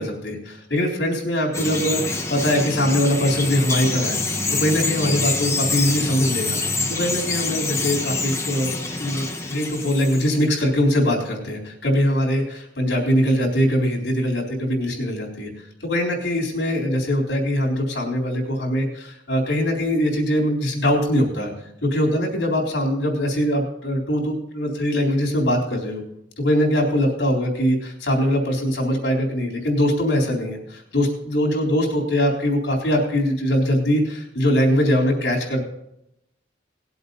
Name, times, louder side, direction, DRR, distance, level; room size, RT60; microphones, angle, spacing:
voice 1, 0.0-6.6 6.9-8.7 9.0-21.5 21.8-26.0 26.4-35.6, equal, 75° left, 0 dB, 3.9 m, -22 dB
Bird vocalization bird call bird song, 1.5-10.4, left 3 dB, 15° left, 1.4 m, -26 dB
19.0 x 7.8 x 4.1 m, 0.79 s
head